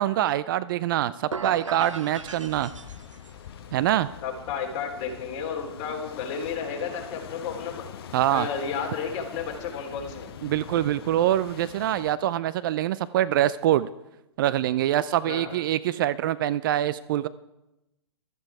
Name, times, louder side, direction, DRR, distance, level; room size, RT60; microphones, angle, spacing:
voice 1, 0.0-2.7 3.7-4.1 8.1-8.5 10.4-13.9 14.4-17.3, right 12 dB, 45° right, 16 dB, 0.5 m, -24 dB
sound 1, 1.3-3.4, right 4 dB, 90° right, 0.7 m, -37 dB
sound 2, 1.7-12.1, left 9 dB, 55° left, 1.0 m, -43 dB
voice 2, 4.2-7.8 8.3-10.3 15.2-15.6, left 6 dB, 35° left, 2 dB, 3.3 m, -32 dB
15.0 x 13.0 x 4.8 m, 0.95 s
hypercardioid pair, 120°, 15 cm